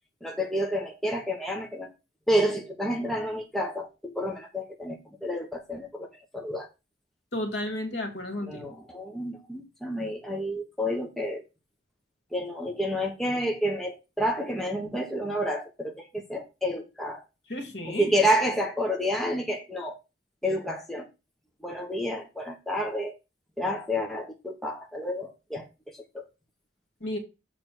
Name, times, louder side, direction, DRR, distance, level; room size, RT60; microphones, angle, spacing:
voice 1, 0.2-1.9 2.3-6.1 6.3-6.7 8.5-11.4 12.3-17.2 17.8-20.0 20.4-21.1 21.6-23.1 23.6-25.7 26.1-26.2, equal, ahead, 1.3 m, -29 dB
voice 2, 7.3-8.6 17.5-18.1 27.0-27.2, left 1 dB, 70° left, 2.5 m, -32 dB
7.0 x 4.2 x 6.0 m
head